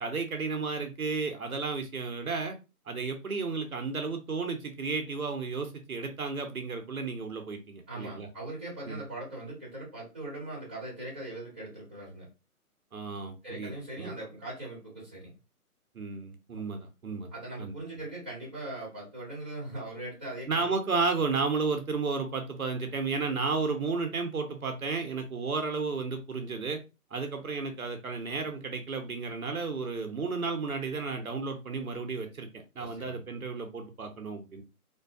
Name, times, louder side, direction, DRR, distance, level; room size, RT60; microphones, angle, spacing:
voice 1, 0.0-2.6 2.9-8.3 8.9-9.0 12.9-13.7 14.0-14.1 15.9-17.3 17.6-17.7 20.5-26.8 27.1-32.5 32.8-34.6, right 4 dB, 65° right, 5 dB, 0.7 m, -33 dB
voice 2, 7.9-12.3 13.4-15.3 17.3-20.7 32.8-33.2, right 2 dB, 5° right, -9 dB, 0.7 m, -40 dB
2.6 x 2.2 x 2.3 m, 0.28 s
figure-of-eight pair, 145°, 45 cm